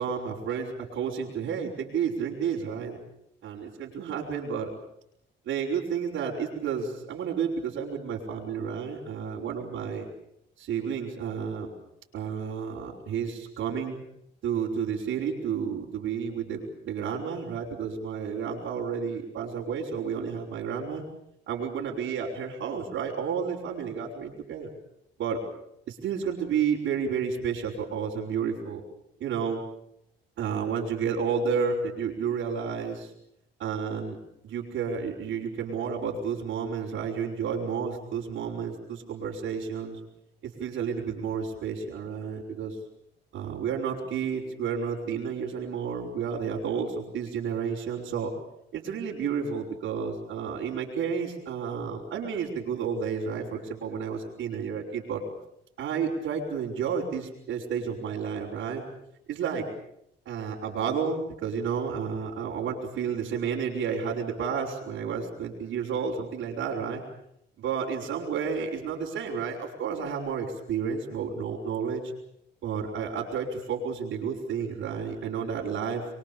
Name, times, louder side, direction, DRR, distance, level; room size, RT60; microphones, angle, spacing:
voice 1, 0.0-3.0 3.4-4.7 5.4-10.0 10.6-11.7 12.1-14.0 14.4-21.0 21.5-24.7 25.2-25.4 25.9-28.8 29.2-29.6 30.4-33.1 33.6-34.2 34.4-40.0 40.4-42.8 43.3-48.3 48.7-55.2 55.8-58.8 59.3-59.7 60.2-67.0 67.6-72.0 72.6-76.1, right 6 dB, 75° right, -7 dB, 5.2 m, -31 dB
25.5 x 23.5 x 7.1 m, 0.75 s
cardioid pair, 90°, 20 cm